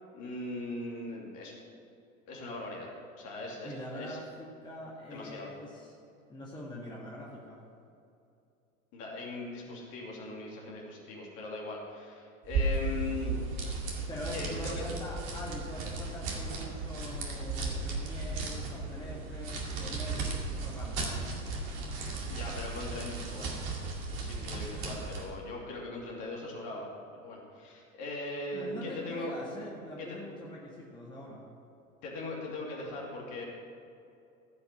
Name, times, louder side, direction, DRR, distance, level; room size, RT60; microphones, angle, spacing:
voice 1, 0.1-1.5 2.3-2.9 3.2-4.2 5.1-5.5 8.9-13.3 14.3-14.9 22.3-23.5 23.9-26.9 27.1-29.3 30.0-30.2 32.0-33.4, left 2 dB, 40° left, -2 dB, 2.7 m, -40 dB
voice 2, 3.6-6.0 6.3-7.6 14.1-21.6 28.5-31.5, left 1 dB, 10° left, -4 dB, 1.7 m, -43 dB
sound 1, 12.4-25.3, right 3 dB, 50° right, 2.3 m, -35 dB
15.0 x 5.8 x 6.4 m, 2.6 s
figure-of-eight pair, 85°, 43 cm